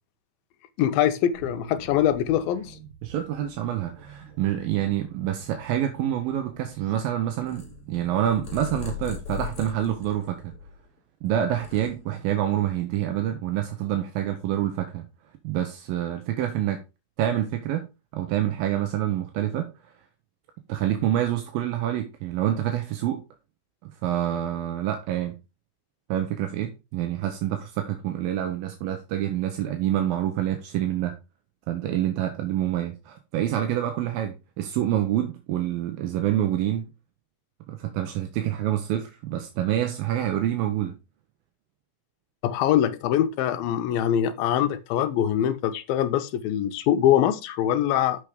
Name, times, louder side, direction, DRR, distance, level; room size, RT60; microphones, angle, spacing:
voice 1, 0.8-2.8 42.4-48.2, left 10 dB, 90° left, 2.6 m, -23 dB
sound 1, 1.3-9.5, right 4 dB, 40° right, 2.1 m, -47 dB
voice 2, 3.0-10.5 11.2-15.1 15.4-16.8 17.2-17.9 18.1-19.7 20.7-23.2 23.8-25.4 26.1-31.2 31.7-36.9 37.7-41.0, right 11 dB, 80° right, 2.7 m, -27 dB
Purr, 7.4-11.0 11.4-12.5, left 9 dB, 20° left, 2.0 m, -39 dB
6.7 x 6.3 x 5.0 m
omnidirectional pair, 4.2 m